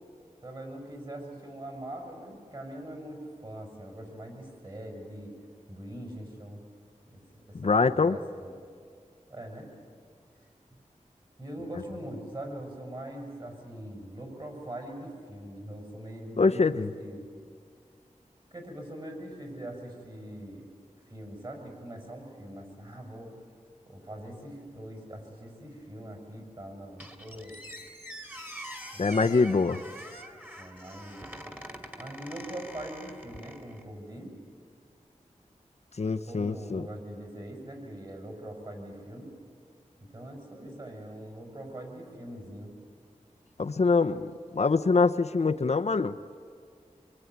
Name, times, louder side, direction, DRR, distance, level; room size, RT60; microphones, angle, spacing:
voice 1, 0.4-5.3 5.7-6.6 7.1-7.2 7.6-8.5 9.3-9.7 11.4-17.2 18.5-20.7 21.1-23.3 23.9-27.6 28.9-29.8 30.6-31.2 32.0-34.3 36.3-39.3 40.0-42.7, right 1 dB, 35° right, 1 dB, 6.8 m, -42 dB
voice 2, 7.5-8.2 16.4-16.9 29.0-29.8 36.0-36.9 43.6-46.2, left 4 dB, 55° left, 8 dB, 0.7 m, -24 dB
Squeak, 27.0-33.9, equal, 15° right, 2.4 m, -44 dB
25.0 x 23.5 x 9.5 m, 2.2 s
wide cardioid pair, 85°, 13 cm